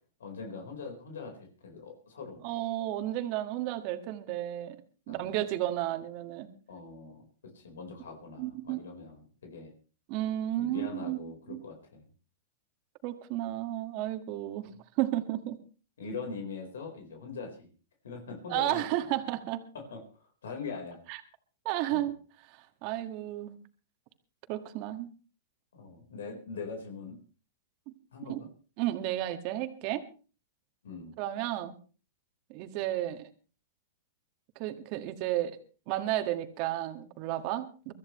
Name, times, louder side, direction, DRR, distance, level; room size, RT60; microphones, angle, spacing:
voice 1, 0.2-2.4 5.1-5.4 6.7-7.2 7.5-9.7 10.6-12.0 16.0-17.7 18.0-18.8 19.7-21.0 21.9-22.1 25.7-27.2 28.1-28.5 30.8-31.1, left 4 dB, 90° left, 3 dB, 4.4 m, -42 dB
voice 2, 2.4-4.8 5.1-6.5 8.4-8.8 10.1-11.6 13.0-14.7 15.0-15.6 18.5-19.6 21.1-21.2 21.7-22.1 22.5-23.6 24.5-25.1 28.2-28.4 28.8-30.0 31.2-31.8 32.5-33.3 34.6-35.6 35.9-37.9, right 14 dB, 45° right, 8 dB, 1.8 m, -32 dB
23.5 x 14.0 x 3.2 m, 0.36 s
hypercardioid pair, 135°, 0 cm